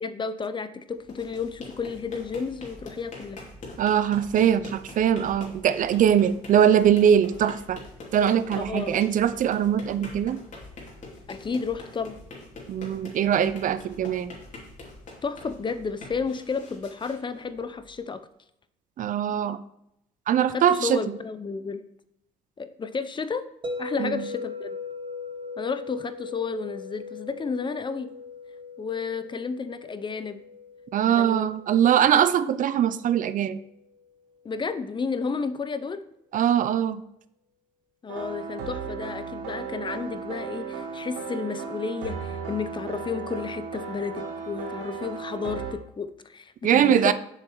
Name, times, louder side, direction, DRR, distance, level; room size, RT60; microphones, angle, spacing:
voice 1, 0.0-3.4 8.5-9.0 11.3-12.2 15.2-18.2 20.5-21.8 22.6-23.4 23.8-24.8 25.6-28.1 28.8-30.4 31.1-31.5 32.0-32.1 34.4-36.0 38.0-47.1, left 5 dB, 30° left, 12 dB, 0.6 m, -32 dB
sound 1, 1.0-18.0, left 2 dB, 45° left, 2.7 m, -44 dB
voice 2, 3.8-7.8 8.1-10.4 12.7-14.3 19.0-19.6 20.3-21.2 24.0-24.3 30.9-33.6 36.3-37.0 46.6-47.1, right 9 dB, 50° right, 14 dB, 0.5 m, -22 dB
sound 2, 23.6-33.7, left 4 dB, 30° right, 1.0 m, -39 dB
sound 3, 38.1-45.7, right 5 dB, 85° right, 1.1 m, -35 dB
7.3 x 6.5 x 3.1 m, 0.79 s
supercardioid pair, 75°, 17 cm